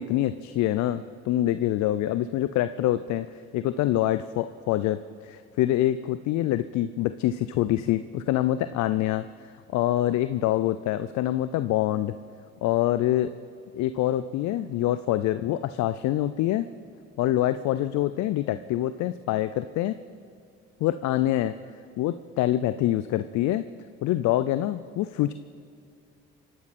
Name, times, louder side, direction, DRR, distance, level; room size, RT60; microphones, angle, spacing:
voice 1, 0.0-3.3 3.5-9.3 9.7-12.1 12.6-13.3 13.7-16.7 17.2-20.0 20.8-21.6 22.0-23.6 24.0-25.3, left 13 dB, 65° left, 12 dB, 0.6 m, -25 dB
25.5 x 12.5 x 4.3 m, 2.4 s
hypercardioid pair, 55°, 31 cm